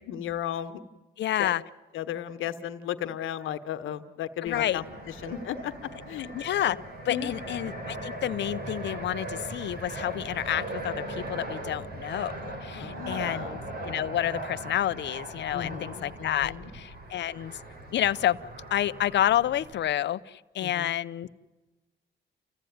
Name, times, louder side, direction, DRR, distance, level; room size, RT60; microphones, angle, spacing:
voice 1, 0.0-0.8 1.4-1.5 1.9-5.7 6.0-6.3 7.1-7.4 12.7-13.5 15.5-16.7 20.6-20.9, left 10 dB, 85° left, 8 dB, 1.3 m, -35 dB
voice 2, 1.2-1.6 4.4-4.8 6.3-6.8 7.0-17.6 17.9-18.4 18.7-21.3, left 12 dB, 65° left, 14 dB, 0.8 m, -29 dB
Fixed-wing aircraft airplane, 4.5-19.7, right 1 dB, 50° right, 5.1 m, -39 dB
29.0 x 15.0 x 9.4 m, 1.1 s
cardioid pair, 90°, 20 cm